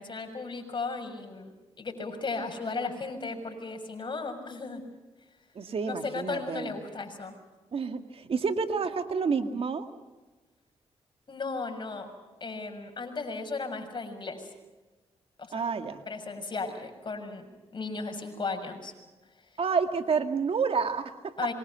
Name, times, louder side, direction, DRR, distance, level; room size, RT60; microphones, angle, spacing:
voice 1, 0.0-4.8 5.9-7.3 11.3-12.1 12.4-14.5 15.4-15.6 16.1-18.9 21.4-21.5, left 4 dB, 45° left, 5 dB, 6.7 m, -35 dB
voice 2, 5.6-6.7 7.7-9.9 15.5-16.0 19.6-21.3, right 5 dB, 60° right, 7 dB, 2.1 m, -29 dB
26.5 x 23.5 x 5.8 m, 1.2 s
cardioid pair, 65°, 11 cm